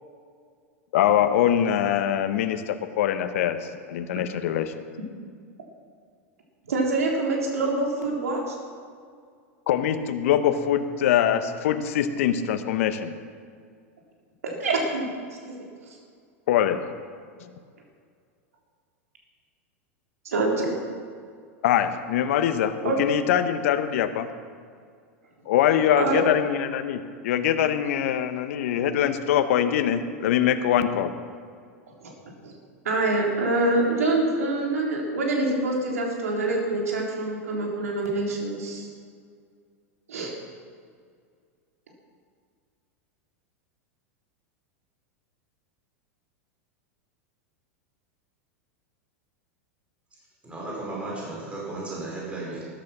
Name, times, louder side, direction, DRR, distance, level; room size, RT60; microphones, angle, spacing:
voice 1, 0.9-3.6 3.9-4.7 9.7-13.1 16.5-16.8 21.6-24.3 25.5-31.1, left 10 dB, 70° left, 10 dB, 1.0 m, -23 dB
voice 2, 6.7-8.6 14.4-15.1 15.4-15.7 20.3-20.8 22.8-23.0 26.0-26.2 32.0-32.1 32.4-32.5 32.9-38.9 40.1-40.3, right 2 dB, 85° right, -1 dB, 3.7 m, -25 dB
voice 3, 50.4-52.7, right 2 dB, 15° right, -4 dB, 4.8 m, -34 dB
14.0 x 11.5 x 6.1 m, 2.1 s
hypercardioid pair, 100°, 8 cm